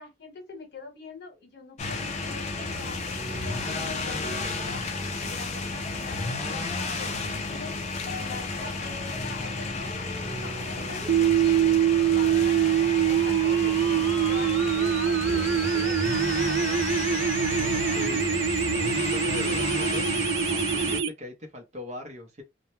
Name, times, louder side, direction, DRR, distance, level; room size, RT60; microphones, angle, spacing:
voice 1, 0.0-4.9 5.3-7.7 8.1-11.1 11.4-11.7 12.0-12.6 12.9-16.7, left 3 dB, 60° left, 1.0 m, -43 dB
sound 1, 1.8-21.0, left 3 dB, 35° left, 0.4 m, -32 dB
sound 2, 2.5-11.6, equal, 20° left, 0.9 m, -43 dB
sound 3, 11.1-21.1, right 9 dB, 70° right, 0.3 m, -24 dB
voice 2, 18.0-18.5 18.9-20.1 20.5-22.4, left 2 dB, 35° right, 0.6 m, -40 dB
2.2 x 2.1 x 2.9 m
head